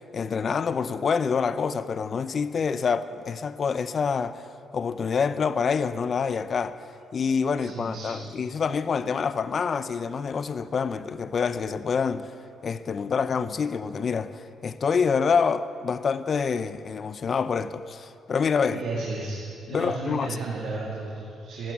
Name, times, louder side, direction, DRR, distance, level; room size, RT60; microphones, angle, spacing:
voice 1, 0.0-4.4 4.7-6.8 7.1-12.3 12.6-18.8 19.7-20.3, left 6 dB, 45° left, 0.5 m, -26 dB
voice 2, 7.5-8.2 18.7-19.4 19.7-21.7, right 3 dB, 80° right, 2.0 m, -33 dB
13.5 x 9.4 x 8.2 m
cardioid pair, 90°, 0 cm